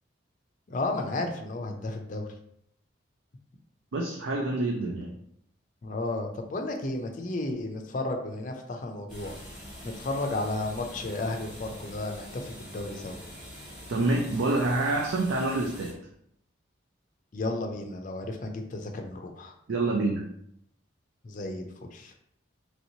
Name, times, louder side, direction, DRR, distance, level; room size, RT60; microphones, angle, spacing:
voice 1, 0.7-2.3 5.8-9.4 9.8-13.2 17.3-19.5 21.2-22.1, left 2 dB, 40° left, 4 dB, 0.4 m, -33 dB
voice 2, 3.9-5.1 13.9-16.0 19.7-20.2, right 2 dB, 85° right, -1 dB, 0.4 m, -27 dB
sound 1, 9.1-15.9, equal, 5° right, 1.1 m, -44 dB
3.1 x 2.9 x 2.7 m, 0.72 s
head